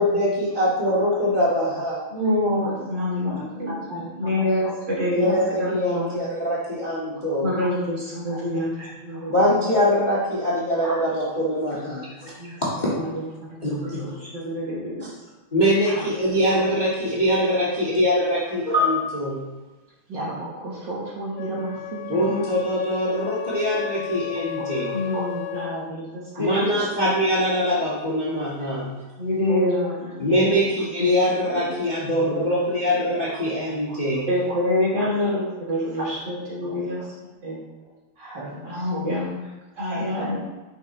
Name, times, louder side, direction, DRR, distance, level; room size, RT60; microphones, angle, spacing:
voice 1, 0.0-2.0 5.1-7.5 9.3-13.1 13.6-14.1 15.0-15.1 15.5-19.4 22.1-24.9 26.4-29.0 30.2-34.3, equal, 25° left, -6 dB, 1.5 m, -23 dB
voice 2, 2.1-3.7 4.2-5.3 5.6-6.1 7.4-9.3 12.4-12.5 12.9-13.2 13.7-15.1 24.9-26.8 29.2-30.6 31.0-31.4 31.7-31.8 32.2-32.7 34.3-37.0 37.4-37.6 38.7-39.4 39.8-40.4, left 1 dB, 35° right, -7 dB, 3.3 m, -26 dB
voice 3, 3.2-4.7 5.2-5.4 7.2-7.7 8.3-9.3 10.8-11.0 13.0-13.1 13.7-13.8 15.9-16.1 16.5-16.6 20.1-22.5 24.5-25.3 25.6-25.7 26.3-26.4 28.6-28.7 29.5-29.6 33.9-34.0 34.5-34.6 35.0-35.1 35.9-36.1 36.6-37.0 38.2-39.1 39.4-39.5 39.9-40.3, right 2 dB, 60° right, -5 dB, 2.0 m, -35 dB
Wind instrument woodwind instrument, 21.4-25.9, left 14 dB, 85° left, 1.5 m, -33 dB
10.0 x 6.0 x 3.2 m, 1.2 s
omnidirectional pair, 2.4 m